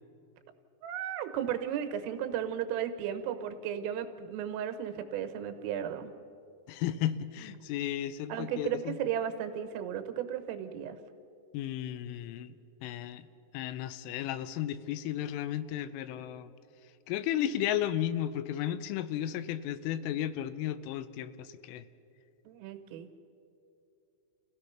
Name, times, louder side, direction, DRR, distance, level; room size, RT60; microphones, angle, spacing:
voice 1, 0.8-6.1 8.3-11.0 22.5-23.1, right 9 dB, 85° right, 8 dB, 3.7 m, -35 dB
voice 2, 6.7-9.0 11.5-12.5 12.8-13.3 13.5-16.5 17.1-21.8, left 11 dB, 85° left, 13 dB, 3.2 m, -34 dB
29.0 x 16.5 x 5.7 m, 2.6 s
omnidirectional pair, 5.7 m